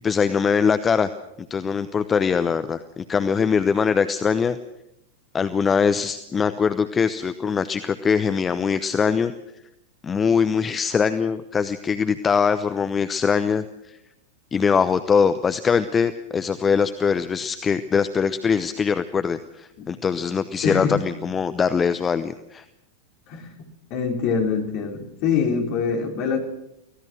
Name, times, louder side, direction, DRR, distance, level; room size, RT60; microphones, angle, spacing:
voice 1, 0.0-1.1 1.5-4.6 5.3-9.3 10.0-14.0 14.5-22.6, left 6 dB, 20° left, 11 dB, 0.9 m, -22 dB
voice 2, 20.6-21.0 23.3-23.5 23.9-26.4, left 6 dB, 40° left, 2 dB, 4.3 m, -24 dB
24.5 x 18.0 x 6.3 m, 0.83 s
figure-of-eight pair, 90°, 0 cm